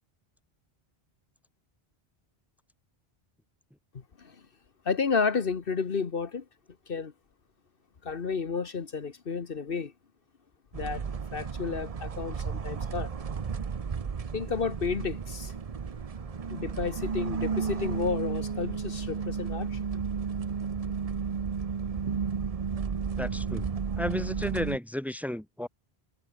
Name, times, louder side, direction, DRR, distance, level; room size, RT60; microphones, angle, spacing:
voice 1, 3.9-4.5 4.8-6.4 6.9-7.1 8.0-9.9 10.7-11.0 11.3-13.1 14.3-15.5 16.5-19.8, left 5 dB, 65° left, 1.4 m, -31 dB
sound 1, 10.7-24.8, right 6 dB, 40° right, 0.8 m, -33 dB
voice 2, 23.2-23.7 24.0-25.7, left 1 dB, ahead, 1.6 m, -33 dB
omnidirectional pair, 1.0 m